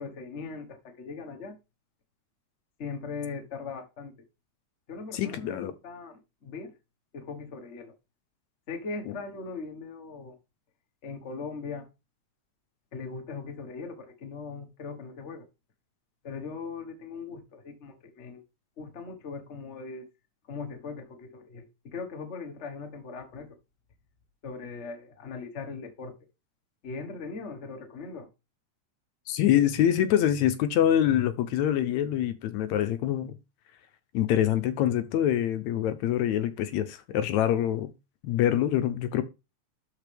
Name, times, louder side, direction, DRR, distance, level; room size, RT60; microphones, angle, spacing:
voice 1, 0.0-1.5 2.8-4.1 4.9-6.7 7.1-7.9 8.7-10.4 11.0-11.9 12.9-15.5 16.2-18.4 18.8-20.1 20.5-23.5 24.4-26.1 26.8-28.3, left 4 dB, 45° left, 0.8 m, -39 dB
voice 2, 5.1-5.7 29.3-33.3 34.1-37.9 38.2-39.2, left 11 dB, 75° left, 1.9 m, -25 dB
12.5 x 4.3 x 3.4 m
omnidirectional pair, 3.5 m